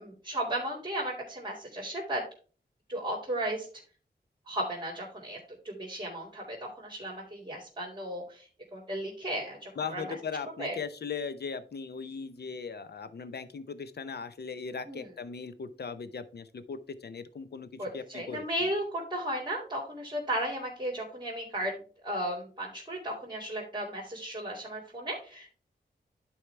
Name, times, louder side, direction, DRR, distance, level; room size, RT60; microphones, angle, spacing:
voice 1, 0.0-2.2 2.9-3.7 4.5-5.4 5.6-10.1 10.6-10.8 14.9-15.1 17.8-25.5, right 1 dB, 25° right, -4 dB, 2.5 m, -35 dB
voice 2, 9.8-18.4, left 5 dB, 65° left, 13 dB, 0.7 m, -38 dB
11.0 x 4.7 x 3.3 m, 0.39 s
wide cardioid pair, 75°, 18 cm